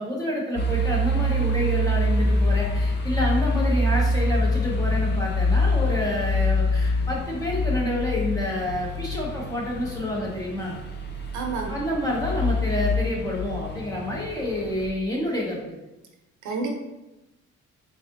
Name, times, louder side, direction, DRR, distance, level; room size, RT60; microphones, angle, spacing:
voice 1, 0.0-10.8 11.7-15.8, left 1 dB, 10° left, -4 dB, 1.1 m, -28 dB
sound 1, 0.6-14.9, left 1 dB, 35° left, 0.6 m, -25 dB
voice 2, 11.3-11.7 16.4-16.8, right 3 dB, 75° right, 2 dB, 0.7 m, -29 dB
4.0 x 2.7 x 2.5 m, 0.96 s
cardioid pair, 90°, 30 cm